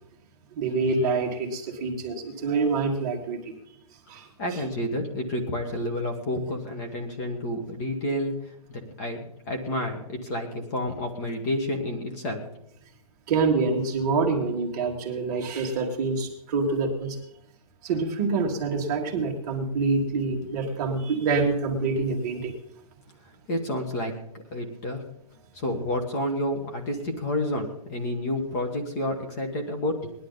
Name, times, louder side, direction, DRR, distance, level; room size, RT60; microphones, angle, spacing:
voice 1, 0.5-3.5 4.1-4.6 13.3-17.2 17.8-22.5, right 4 dB, 30° right, 0 dB, 1.7 m, -26 dB
voice 2, 4.4-8.3 8.7-12.4 23.5-24.1 24.5-25.0 25.5-30.1, left 1 dB, 25° left, 4 dB, 1.6 m, -30 dB
19.0 x 11.0 x 4.0 m, 0.75 s
hypercardioid pair, 170°, 20 cm